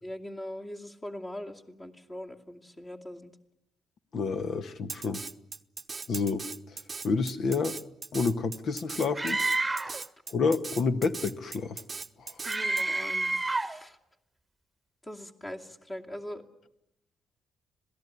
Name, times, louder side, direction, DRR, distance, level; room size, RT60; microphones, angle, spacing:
voice 1, 0.0-3.3 12.4-14.0 15.0-16.4, left 1 dB, 25° left, 0 dB, 2.6 m, -41 dB
voice 2, 4.1-5.2 6.1-6.4 7.0-7.8 8.1-9.4 10.3-11.8, left 4 dB, 60° left, 10 dB, 1.7 m, -28 dB
Drum kit, 4.9-12.8, right 4 dB, 30° right, 0.9 m, -39 dB
Screaming, 9.2-10.0 12.4-13.8, right 2 dB, 15° right, 1.3 m, -29 dB
26.5 x 17.5 x 9.9 m, 0.86 s
cardioid pair, 90°, 0 cm